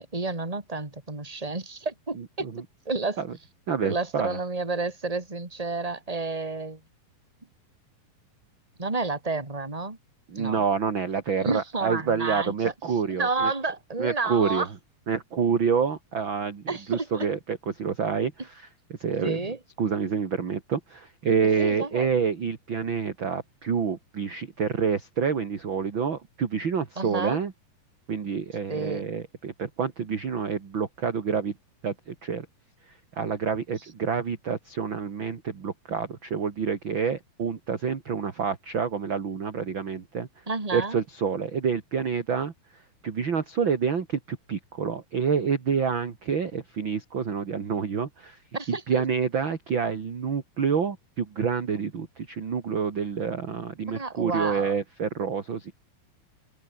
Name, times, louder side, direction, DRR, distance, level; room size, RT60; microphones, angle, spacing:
voice 1, 0.0-2.5 2.8-3.2 3.8-6.8 8.8-10.0 10.3-10.6 11.4-12.7 13.2-14.7 16.7-17.3 19.2-19.6 21.6-22.1 27.0-27.4 28.7-29.1 40.5-41.0 48.5-49.0 53.8-54.7, right 3 dB, 10° right, 3.3 m, -30 dB
voice 2, 2.2-2.6 3.2-3.3 3.7-4.4 10.3-13.5 14.0-14.7 15.1-16.6 16.9-18.7 19.0-19.4 19.8-27.5 28.1-31.5 31.8-32.5 33.2-40.3 40.7-42.5 43.0-48.4 48.7-55.7, right 6 dB, 40° right, 2.5 m, -28 dB
open air
omnidirectional pair, 4.2 m